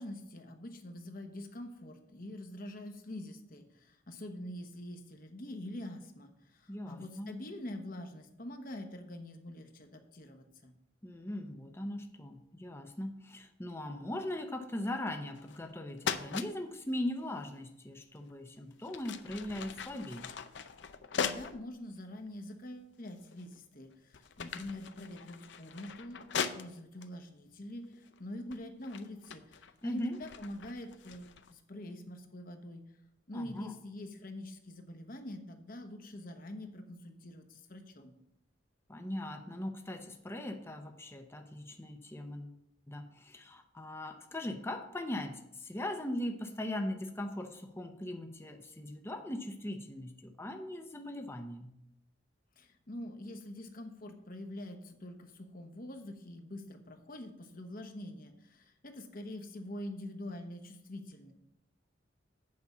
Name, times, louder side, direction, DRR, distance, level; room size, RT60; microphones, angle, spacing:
voice 1, 0.0-10.7 21.1-32.8 33.3-38.1 52.6-61.3, left 1 dB, 45° left, 5 dB, 1.1 m, -45 dB
voice 2, 6.7-7.4 11.0-20.3 29.8-30.2 33.3-33.7 38.9-42.6 42.9-51.7, left 1 dB, 15° left, 5 dB, 0.7 m, -39 dB
sound 1, 15.3-15.7 16.0-16.5 18.2-18.3 18.8-21.6 22.3-22.4 23.1-23.6 23.9-27.1 27.9-28.2 28.5-31.5, left 6 dB, 65° left, 0.6 m, -40 dB
8.6 x 5.2 x 6.9 m, 0.79 s
head